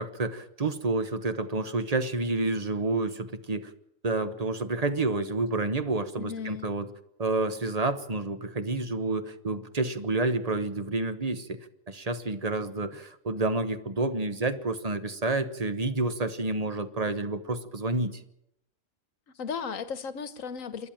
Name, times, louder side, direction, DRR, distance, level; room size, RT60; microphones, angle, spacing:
voice 1, 0.0-3.7 4.0-6.9 7.2-18.2, right 2 dB, 30° right, 1.1 m, -29 dB
voice 2, 6.2-6.7 19.4-20.9, left 6 dB, 75° left, 1.6 m, -35 dB
27.5 x 11.0 x 8.9 m
omnidirectional pair, 1.4 m